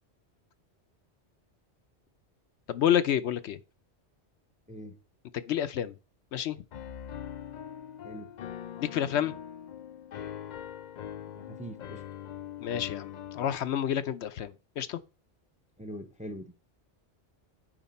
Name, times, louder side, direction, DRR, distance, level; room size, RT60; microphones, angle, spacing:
voice 1, 2.7-3.6 5.3-6.0 6.3-6.6 8.8-9.3 12.6-15.0, left 10 dB, 75° left, 0.9 m, -29 dB
voice 2, 4.7-5.0 8.0-8.3 11.3-12.0 15.8-16.5, equal, 10° right, 0.6 m, -42 dB
Piano, 6.7-13.6, left 9 dB, 55° left, 0.5 m, -42 dB
9.0 x 4.9 x 4.2 m
omnidirectional pair, 1.2 m